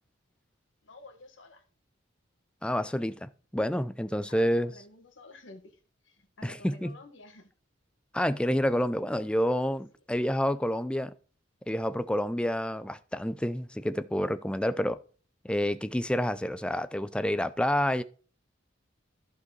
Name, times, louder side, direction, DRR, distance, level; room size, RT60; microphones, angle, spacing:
voice 1, 0.8-1.6 4.3-5.8 6.0-7.5, left 2 dB, 70° left, 1.7 m, -51 dB
voice 2, 2.6-4.7 6.4-6.9 8.1-11.1 11.7-15.0 15.4-18.0, equal, 5° left, 0.5 m, -28 dB
14.5 x 5.3 x 4.0 m
head